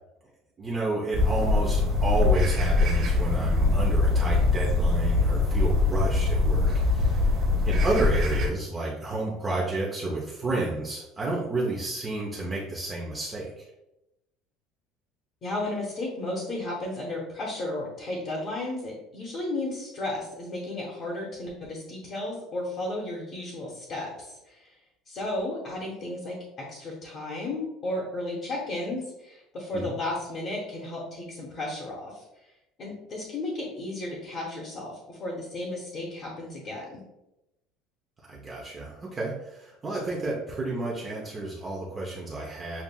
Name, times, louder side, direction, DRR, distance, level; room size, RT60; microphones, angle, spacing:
voice 1, 0.6-7.3 7.6-13.6 29.7-29.9 38.3-42.8, right 2 dB, 15° right, -4 dB, 0.5 m, -31 dB
sound 1, 1.1-8.5, left 3 dB, 35° right, 1.5 m, -23 dB
voice 2, 15.4-24.7 25.1-32.2 32.8-37.0, left 2 dB, 30° left, -4 dB, 0.9 m, -34 dB
7.0 x 2.4 x 2.2 m, 0.90 s
cardioid pair, 180°, 0 cm